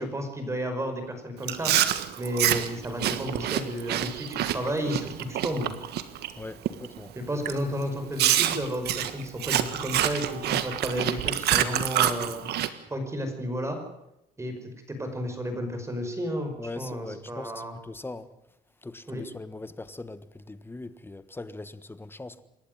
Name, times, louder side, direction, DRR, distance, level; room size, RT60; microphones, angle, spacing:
voice 1, 0.0-1.7 2.2-5.7 7.2-12.5 12.9-13.8 14.4-17.8 19.1-19.2, equal, 15° right, 5.2 m, -32 dB
Chewing mastication, 1.4-6.3 6.7-7.0 7.5-7.6 8.2-12.7, right 12 dB, 75° right, 1.6 m, -27 dB
voice 2, 6.4-7.1 16.6-18.3 18.8-22.4, left 2 dB, 15° left, 1.4 m, -40 dB
27.5 x 11.5 x 9.3 m
cardioid pair, 110°, 17 cm